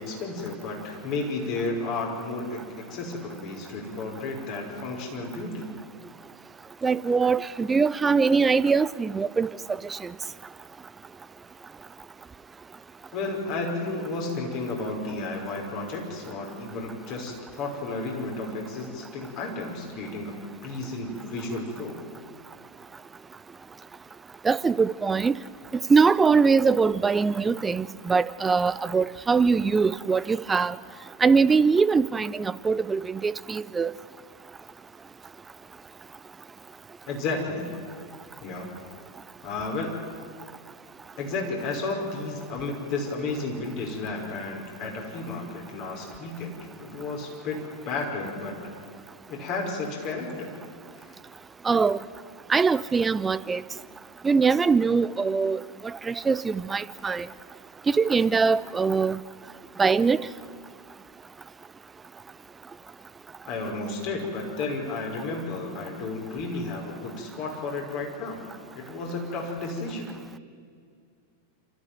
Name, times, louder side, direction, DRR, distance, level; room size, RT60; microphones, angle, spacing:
voice 1, 0.0-5.7 13.1-20.3 20.6-22.0 37.1-37.7 38.4-38.7 39.4-39.9 41.2-48.6 49.3-50.5 51.0-51.1 57.0-57.1 63.5-68.4 68.7-70.1, left 3 dB, 45° left, 5.6 m, -32 dB
voice 2, 6.8-9.5 9.8-10.1 24.4-25.4 25.9-30.8 31.2-33.9 51.6-52.0 52.5-53.6 54.2-57.3 57.9-59.2 59.8-60.3, right 5 dB, 15° right, 0.6 m, -22 dB
26.5 x 14.5 x 9.2 m
figure-of-eight pair, 90°, 0 cm